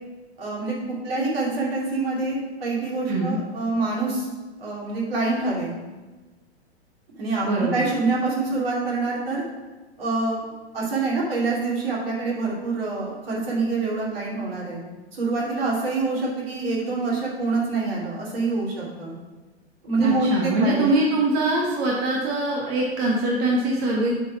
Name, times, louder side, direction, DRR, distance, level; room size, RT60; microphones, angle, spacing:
voice 1, 0.4-0.7 1.0-4.3 4.6-5.7 7.2-9.4 10.0-10.4 10.7-14.8 15.1-19.1 19.8-20.9, right 3 dB, 60° right, -4 dB, 2.8 m, -26 dB
voice 2, 7.4-7.8 20.0-24.1, right 2 dB, 30° right, -2 dB, 1.0 m, -23 dB
8.2 x 4.1 x 6.0 m, 1.2 s
figure-of-eight pair, 105°, 33 cm